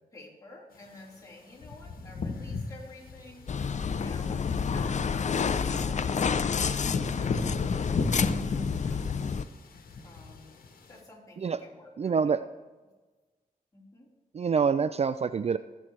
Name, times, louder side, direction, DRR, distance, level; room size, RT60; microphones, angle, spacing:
voice 1, 0.1-9.4 10.0-10.6 10.9-12.5 13.7-14.1, left 2 dB, 25° left, -5 dB, 4.0 m, -51 dB
sound 1, 0.8-1.1 1.5-11.0, left 3 dB, 85° left, 1.2 m, -35 dB
sound 2, 3.5-9.4, left 6 dB, 55° left, 0.5 m, -29 dB
voice 2, 12.0-12.4 14.3-15.6, right 6 dB, 45° right, 13 dB, 0.4 m, -26 dB
20.5 x 7.6 x 3.2 m, 1.3 s
cardioid pair, 60°, 15 cm